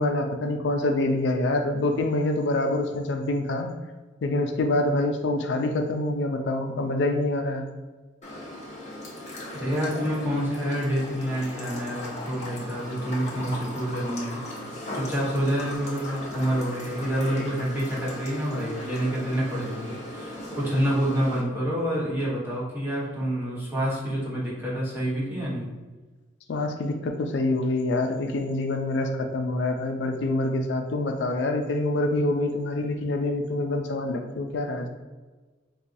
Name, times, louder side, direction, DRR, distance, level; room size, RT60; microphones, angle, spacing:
voice 1, 0.0-3.7 4.2-7.7 26.5-34.9, left 2 dB, 70° left, 4 dB, 0.4 m, -26 dB
sound 1, 8.2-21.4, left 1 dB, 40° left, 0.8 m, -38 dB
voice 2, 9.6-14.4 14.9-25.7, equal, 10° right, -7 dB, 1.1 m, -28 dB
4.2 x 2.2 x 2.6 m, 1.3 s
head